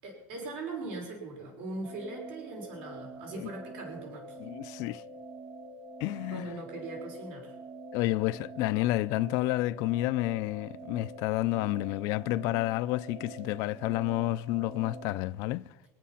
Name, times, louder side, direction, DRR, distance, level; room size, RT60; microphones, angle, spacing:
voice 1, 0.0-4.4 6.3-7.5, right 2 dB, 80° right, 5.8 m, -40 dB
sound 1, 1.8-15.2, right 2 dB, 50° right, 2.7 m, -46 dB
voice 2, 4.4-5.0 6.0-6.6 7.9-15.6, left 17 dB, 60° left, 0.5 m, -30 dB
26.0 x 9.3 x 5.8 m
cardioid pair, 160°, 6 cm